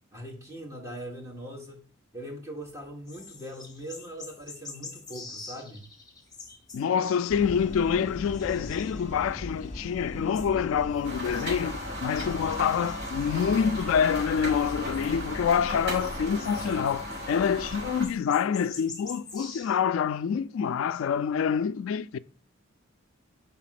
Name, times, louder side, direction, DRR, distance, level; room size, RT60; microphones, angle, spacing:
voice 1, 0.1-1.8 2.1-5.9, equal, 15° right, 1.6 m, -41 dB
sound 1, 2.6-7.4 7.7-9.6 9.9-11.8 12.4-14.3 14.7-15.5 15.9-19.8, left 4 dB, 20° left, 1.4 m, -46 dB
voice 2, 6.7-22.2, left 7 dB, 70° left, 0.3 m, -27 dB
sound 2, 7.3-18.1, left 1 dB, 35° left, 0.8 m, -39 dB
sound 3, 11.0-18.0, equal, 70° right, 4.0 m, -36 dB
5.4 x 4.1 x 5.8 m
head